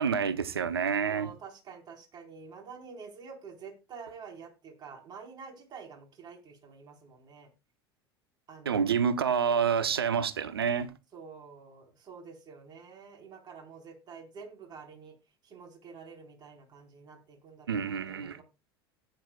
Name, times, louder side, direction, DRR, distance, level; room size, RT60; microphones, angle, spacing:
voice 1, 0.0-1.3 8.6-10.9 17.7-18.4, right 7 dB, 75° right, 1.0 m, -28 dB
voice 2, 1.1-7.5 8.5-8.9 11.1-15.1 15.4-18.4, right 5 dB, 35° right, 4.2 m, -48 dB
16.0 x 9.9 x 2.3 m
figure-of-eight pair, 75°, 13 cm